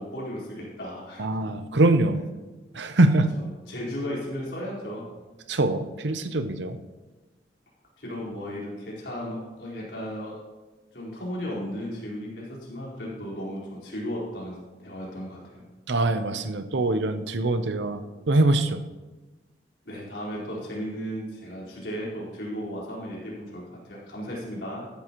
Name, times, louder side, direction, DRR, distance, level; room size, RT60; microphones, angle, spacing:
voice 1, 0.0-1.2 3.4-5.0 8.0-10.3 10.9-15.6 19.8-24.9, equal, 70° left, -5 dB, 4.5 m, -35 dB
voice 2, 1.2-2.2 2.7-3.4 5.5-6.8 15.9-18.8, right 2 dB, 80° right, 10 dB, 0.7 m, -23 dB
14.5 x 11.0 x 3.1 m, 1.2 s
head